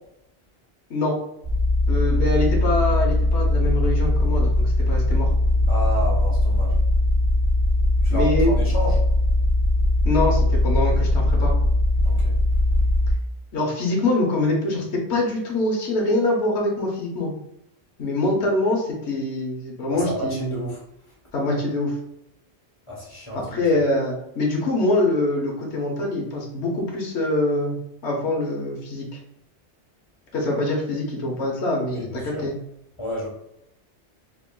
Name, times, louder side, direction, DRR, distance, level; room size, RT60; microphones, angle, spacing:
sound 1, 1.4-13.1, left 1 dB, 50° right, 0.8 m, -20 dB
voice 1, 1.9-5.3 8.1-8.8 10.0-11.5 13.5-17.3 18.0-20.6 21.3-21.9 23.3-27.8 28.0-29.0 30.3-32.6, left 2 dB, 85° left, -1 dB, 1.2 m, -24 dB
voice 2, 5.7-6.7 8.0-8.9 12.0-12.3 19.9-20.8 22.9-23.4 31.9-32.4 33.0-33.3, equal, 30° left, -3 dB, 1.1 m, -30 dB
3.7 x 3.5 x 2.2 m, 0.79 s
omnidirectional pair, 1.1 m